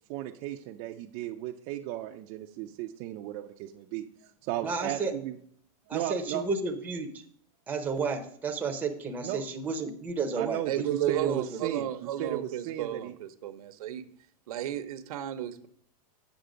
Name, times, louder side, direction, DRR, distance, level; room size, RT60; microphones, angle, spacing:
voice 1, 0.1-5.4 5.9-6.4 9.2-9.4 10.4-10.7 11.1-13.2, right 13 dB, 35° right, 0.5 m, -35 dB
voice 2, 4.6-5.1 5.9-7.2 7.7-11.6, right 4 dB, 10° right, 0.8 m, -32 dB
voice 3, 10.7-14.0 14.5-15.7, right 11 dB, 80° right, 0.9 m, -34 dB
8.1 x 6.7 x 5.1 m
supercardioid pair, 160°, 19 cm